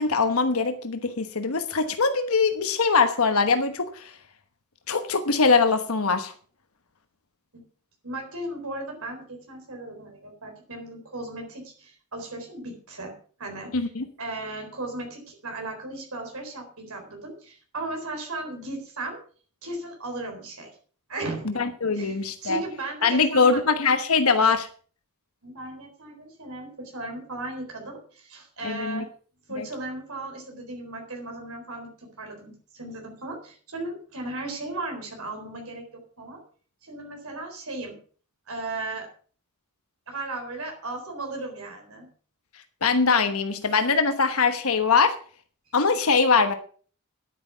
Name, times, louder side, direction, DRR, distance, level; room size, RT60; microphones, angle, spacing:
voice 1, 0.0-4.1 4.9-6.3 13.7-14.1 21.5-22.6 23.0-24.7 28.6-29.0 29.6-29.7 42.8-45.1 45.7-46.5, left 4 dB, 70° left, 7 dB, 1.2 m, -22 dB
voice 2, 8.0-13.1 13.4-13.7 14.2-19.2 19.6-20.7 21.1-21.6 21.9-23.6 25.4-29.1 29.5-36.4 36.8-38.0 38.5-39.1 40.1-42.1, right 2 dB, 70° right, 2 dB, 4.2 m, -36 dB
10.5 x 9.6 x 5.8 m, 0.43 s
head